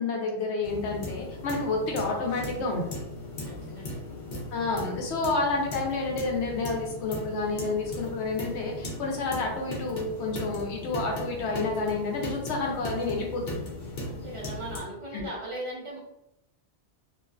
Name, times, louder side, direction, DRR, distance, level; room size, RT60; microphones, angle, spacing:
voice 1, 0.0-3.0 4.5-13.6 15.1-15.2, left 3 dB, 90° left, 0 dB, 0.9 m, -29 dB
sound 1, 0.6-14.8, left 1 dB, 60° left, 0.9 m, -38 dB
voice 2, 3.4-4.0 14.0-16.0, right 1 dB, 35° right, -4 dB, 0.6 m, -38 dB
2.5 x 2.4 x 2.3 m, 0.86 s
omnidirectional pair, 1.1 m